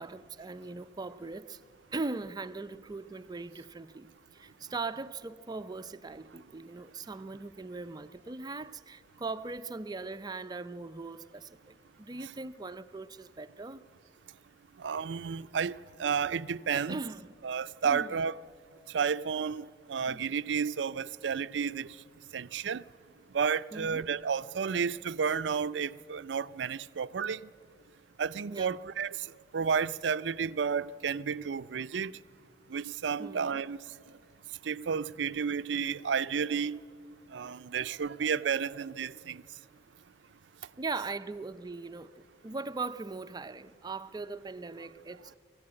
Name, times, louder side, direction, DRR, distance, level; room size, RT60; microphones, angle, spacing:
voice 1, 0.0-1.6 1.9-13.8 16.7-17.3 17.8-18.2 20.1-20.2 23.7-24.1 28.5-28.7 33.2-33.5 40.8-45.3, right 3 dB, 20° right, 0.5 m, -40 dB
voice 2, 14.8-15.7 16.0-17.0 17.4-18.3 18.9-21.9 22.3-22.8 23.3-27.4 28.2-29.1 29.5-32.1 32.7-33.8 34.6-36.8 37.3-39.4, right 6 dB, 75° right, 0.5 m, -31 dB
22.0 x 15.0 x 8.8 m
head